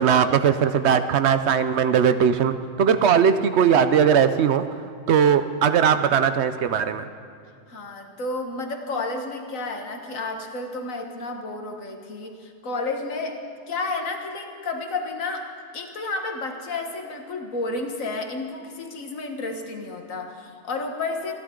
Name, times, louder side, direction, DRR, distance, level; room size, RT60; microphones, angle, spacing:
voice 1, 0.0-2.5 2.8-4.6 5.1-7.0, right 7 dB, 65° right, 10 dB, 0.8 m, -19 dB
voice 2, 7.7-13.4 13.7-15.5 15.7-21.3, left 3 dB, 90° left, 4 dB, 1.8 m, -31 dB
26.5 x 11.5 x 3.8 m, 2.4 s
omnidirectional pair, 1.4 m